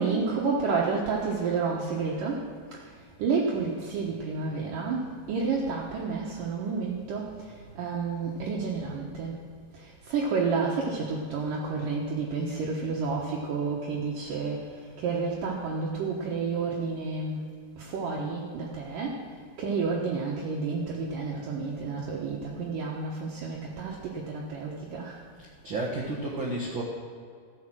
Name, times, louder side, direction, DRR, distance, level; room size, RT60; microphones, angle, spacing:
voice 1, 0.0-9.4 9.7-17.5 17.8-19.3 19.6-25.2, right 4 dB, 70° right, -3 dB, 2.7 m, -30 dB
voice 2, 25.4-26.8, right 2 dB, 50° right, -4 dB, 1.5 m, -32 dB
14.0 x 8.9 x 6.2 m, 2.2 s
omnidirectional pair, 4.4 m